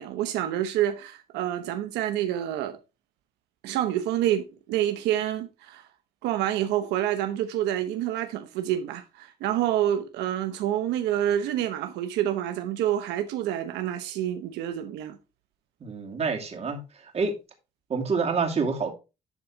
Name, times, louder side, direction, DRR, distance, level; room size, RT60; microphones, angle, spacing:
voice 1, 0.0-2.8 3.6-5.9 6.2-15.2, right 11 dB, 90° right, 0.9 m, -28 dB
voice 2, 15.8-17.3 17.9-18.9, right 4 dB, 40° right, 2.5 m, -27 dB
11.0 x 3.9 x 4.5 m
cardioid pair, 110°, 17 cm